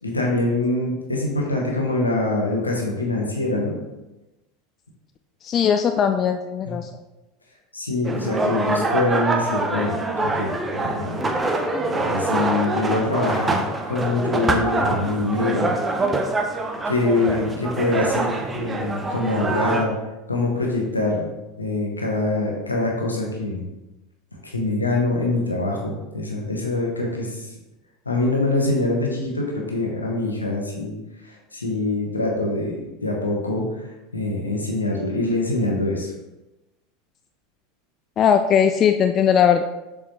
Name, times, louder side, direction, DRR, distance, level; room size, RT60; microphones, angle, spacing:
voice 1, 0.0-3.8 6.6-6.7 7.7-11.4 11.9-15.7 16.9-20.0 20.3-21.3 21.6-23.6 24.4-27.5 28.0-30.9 31.2-33.8 34.1-36.1, left 2 dB, 85° left, -1 dB, 1.2 m, -24 dB
voice 2, 5.4-6.9 38.2-39.6, left 8 dB, 35° left, 7 dB, 0.3 m, -19 dB
sound 1, 8.0-19.8, right 2 dB, 20° right, 0.7 m, -25 dB
6.9 x 4.9 x 3.0 m, 1.0 s
figure-of-eight pair, 80°, 0 cm